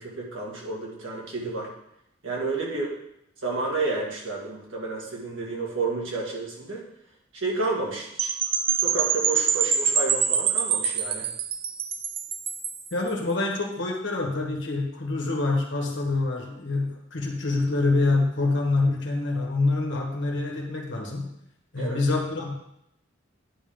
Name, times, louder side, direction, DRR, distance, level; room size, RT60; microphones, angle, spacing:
voice 1, 0.0-1.7 2.2-2.9 3.4-6.8 7.3-8.3 8.8-11.3 21.8-22.0, right 3 dB, 80° right, -3 dB, 2.0 m, -30 dB
Percussion / Wind chime, 8.2-12.9, right 7 dB, 25° right, 0.3 m, -25 dB
voice 2, 12.9-21.3 21.7-22.5, left 3 dB, 65° left, 1 dB, 1.5 m, -26 dB
9.8 x 3.7 x 5.3 m, 0.78 s
head